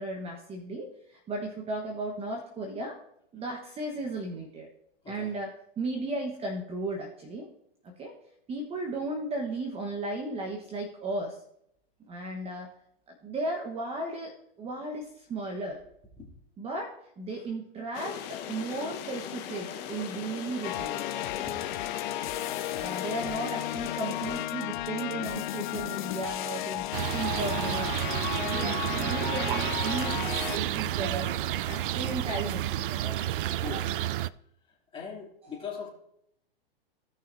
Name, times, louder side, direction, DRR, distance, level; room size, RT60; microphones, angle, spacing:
voice 1, 0.0-3.0 3.3-4.7 5.1-7.5 7.8-8.2 8.5-11.4 12.1-12.7 13.1-15.8 16.6-21.5 22.8-28.0 28.3-33.2 35.4-35.7, right 2 dB, 20° right, 2 dB, 1.2 m, -35 dB
sound 1, 17.9-24.5, left 10 dB, 35° left, 1.2 m, -39 dB
sound 2, 20.6-30.6, left 14 dB, 50° left, 0.5 m, -34 dB
sound 3, 26.9-34.3, right 13 dB, 60° right, 0.4 m, -30 dB
voice 2, 33.6-34.1 34.9-35.9, left 6 dB, 15° left, -2 dB, 2.6 m, -40 dB
17.0 x 6.0 x 2.7 m, 0.74 s
hypercardioid pair, 120°, 31 cm